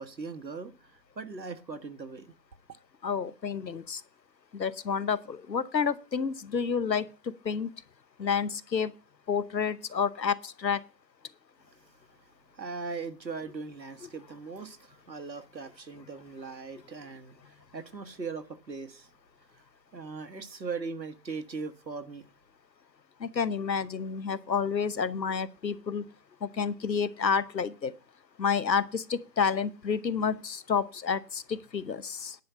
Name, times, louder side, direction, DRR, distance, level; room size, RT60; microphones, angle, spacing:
voice 1, 0.0-2.3 12.5-19.1 19.5-19.6 19.9-22.2, right 4 dB, 85° right, 1.5 m, -39 dB
voice 2, 3.0-4.0 4.5-7.7 8.2-8.9 9.3-10.8 14.0-14.1 23.2-26.0 26.4-27.9 28.4-32.4, left 6 dB, 80° left, 1.0 m, -29 dB
10.0 x 5.4 x 8.0 m
figure-of-eight pair, 165°, 50 cm